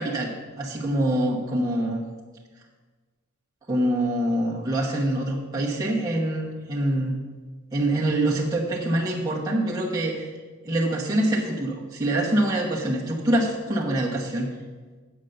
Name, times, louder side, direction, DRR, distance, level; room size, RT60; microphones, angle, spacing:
voice 1, 0.0-2.0 3.7-7.2 7.7-10.3 10.6-14.5, right 1 dB, 20° right, -5 dB, 1.0 m, -25 dB
7.9 x 7.2 x 6.4 m, 1.4 s
head